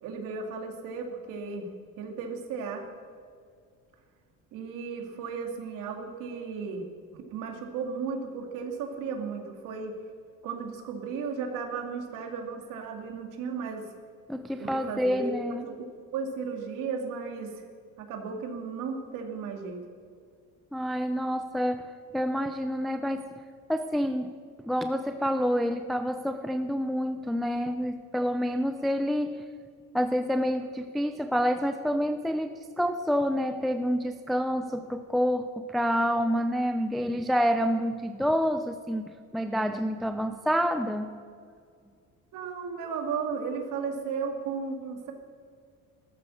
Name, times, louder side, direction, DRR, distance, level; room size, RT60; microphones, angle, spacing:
voice 1, 0.0-1.7 2.0-2.9 4.5-6.9 7.1-9.9 10.4-13.9 14.6-15.4 15.6-15.8 16.1-17.6 18.0-19.8 42.3-45.1, right 5 dB, 75° right, 3 dB, 2.5 m, -35 dB
voice 2, 14.3-15.6 20.7-23.3 23.7-24.3 24.6-29.4 29.9-41.2, equal, ahead, 7 dB, 0.4 m, -28 dB
17.0 x 13.0 x 6.4 m, 2.2 s
cardioid pair, 165°, 32 cm